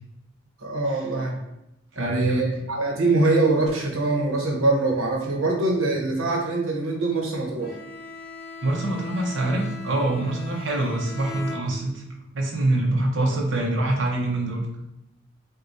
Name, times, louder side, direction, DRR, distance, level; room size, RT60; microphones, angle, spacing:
voice 1, 0.6-1.4 2.0-7.7, right 2 dB, 90° right, 0 dB, 1.0 m, -23 dB
voice 2, 1.9-2.5 8.6-12.0 12.3-14.7, right 2 dB, 65° right, -1 dB, 0.9 m, -25 dB
Bowed string instrument, 7.6-12.2, left 2 dB, 50° left, 0.5 m, -39 dB
6.4 x 2.3 x 2.7 m, 0.88 s
head